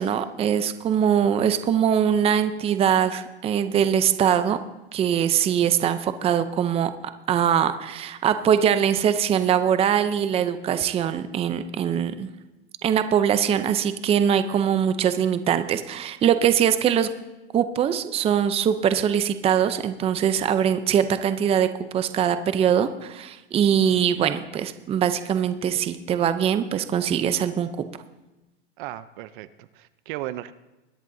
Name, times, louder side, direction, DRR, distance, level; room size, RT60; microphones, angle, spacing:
voice 1, 0.0-4.6 4.9-6.9 7.3-12.3 12.8-17.1 17.5-27.7, right 8 dB, 20° right, 11 dB, 0.6 m, -22 dB
voice 2, 28.8-30.5, right 14 dB, 55° right, 14 dB, 0.7 m, -36 dB
22.0 x 10.5 x 2.7 m, 1.0 s
hypercardioid pair, 130°, 30 cm